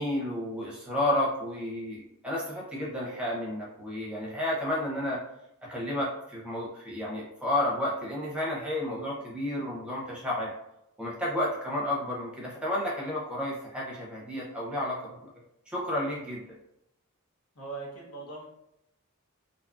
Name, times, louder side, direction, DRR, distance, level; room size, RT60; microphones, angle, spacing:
voice 1, 0.0-5.2 5.7-10.5 11.0-15.3 15.7-16.4, left 1 dB, 5° right, -5 dB, 0.6 m, -31 dB
voice 2, 17.5-18.5, right 3 dB, 90° left, -3 dB, 1.0 m, -40 dB
2.7 x 2.4 x 2.4 m, 0.82 s
head